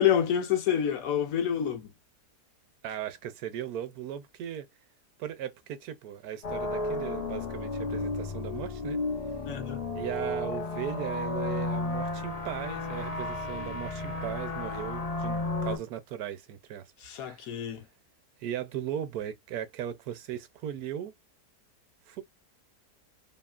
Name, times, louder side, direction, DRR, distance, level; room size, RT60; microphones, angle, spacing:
voice 1, 0.0-1.9 9.5-9.8 17.0-17.8, left 9 dB, 70° left, 0.9 m, -27 dB
voice 2, 2.8-4.7 5.2-9.0 9.9-16.9 17.2-17.5 18.4-21.1 22.1-22.2, right 10 dB, 70° right, 1.0 m, -37 dB
sound 1, 6.4-15.8, left 2 dB, 50° left, 0.4 m, -33 dB
2.9 x 2.6 x 2.3 m
omnidirectional pair, 1.7 m